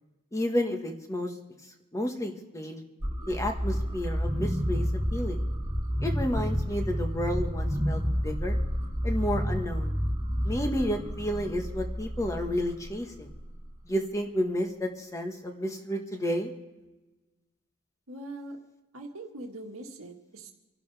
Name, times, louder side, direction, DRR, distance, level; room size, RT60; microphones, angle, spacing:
voice 1, 0.3-1.3 1.9-2.8 3.3-4.8 5.1-5.4 6.0-8.6 9.0-10.0 10.4-13.3 13.9-16.5, equal, 15° left, 3 dB, 1.5 m, -31 dB
sound 1, 3.0-13.9, equal, 20° right, 2.2 m, -30 dB
voice 2, 18.1-18.6 18.9-20.5, right 1 dB, 85° right, 1 dB, 1.8 m, -42 dB
27.0 x 11.5 x 3.5 m, 1.1 s
head